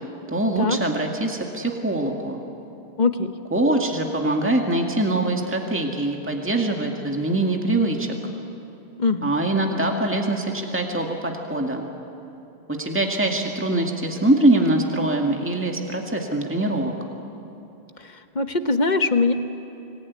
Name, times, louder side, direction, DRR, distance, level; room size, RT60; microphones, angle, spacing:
voice 1, 0.3-2.4 3.5-8.2 9.2-11.9 12.7-16.9, right 1 dB, 10° right, 1 dB, 2.0 m, -23 dB
voice 2, 3.0-3.3 9.0-9.4 18.0-19.3, left 3 dB, 45° left, 8 dB, 1.2 m, -22 dB
26.0 x 19.5 x 9.6 m, 2.9 s
omnidirectional pair, 1.1 m